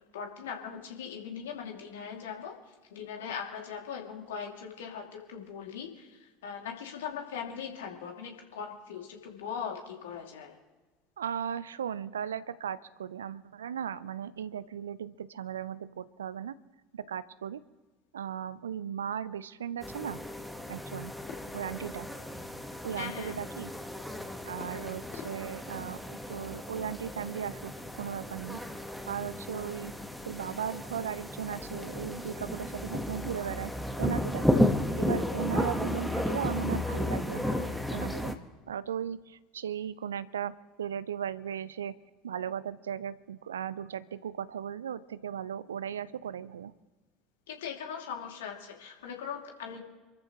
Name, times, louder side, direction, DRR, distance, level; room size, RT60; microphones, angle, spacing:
voice 1, 0.1-2.5 2.9-10.5 22.9-23.3 47.5-49.8, left 7 dB, 65° left, 1 dB, 2.7 m, -40 dB
voice 2, 11.2-16.6 16.9-17.6 18.1-20.2 20.7-21.1 21.5-22.1 22.8-23.7 24.4-28.6 29.1-29.9 30.3-33.7 34.0-34.5 35.0-38.3 38.7-40.5 40.8-42.0 42.2-46.7, right 8 dB, 70° right, 17 dB, 0.5 m, -37 dB
sound 1, 19.8-38.4, left 1 dB, ahead, 1.4 m, -33 dB
sound 2, 24.6-26.7, left 7 dB, 40° left, 2.6 m, -51 dB
27.5 x 13.5 x 3.1 m, 1.3 s
figure-of-eight pair, 70°, 0 cm